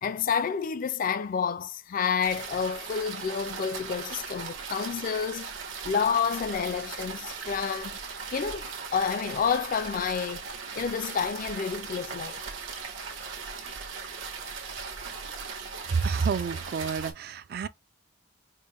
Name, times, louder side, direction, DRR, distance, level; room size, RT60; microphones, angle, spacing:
voice 1, 0.0-5.5 5.8-8.0 8.3-10.4 10.8-12.4, left 6 dB, 40° left, 0.3 m, -29 dB
sound 1, 2.2-17.1, right 5 dB, 70° right, 1.2 m, -38 dB
voice 2, 15.9-17.7, right 5 dB, 50° right, 0.3 m, -29 dB
5.3 x 2.1 x 3.1 m
head